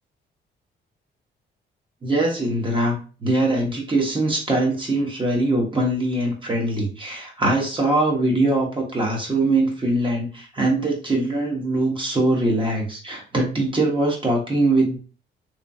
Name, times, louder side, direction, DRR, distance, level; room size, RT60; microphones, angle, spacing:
voice 1, 2.0-15.0, right 2 dB, 25° right, -2 dB, 1.3 m, -22 dB
3.1 x 2.2 x 2.6 m, 0.37 s
cardioid pair, 90°, 20 cm